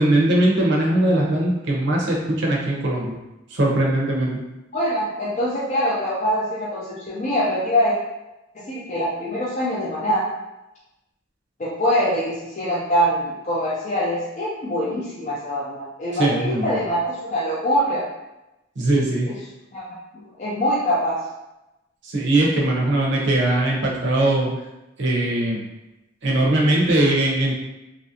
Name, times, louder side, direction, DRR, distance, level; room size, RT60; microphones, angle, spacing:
voice 1, 0.0-3.1 3.5-4.4 16.2-16.8 18.8-19.3 22.0-24.5 25.0-25.6 26.2-27.6, right 1 dB, 60° right, -2 dB, 0.7 m, -20 dB
voice 2, 4.7-7.9 8.5-10.3 11.6-18.1 19.3-19.4 19.7-21.2, equal, 35° left, -7 dB, 0.5 m, -24 dB
2.9 x 2.5 x 2.7 m, 0.96 s
head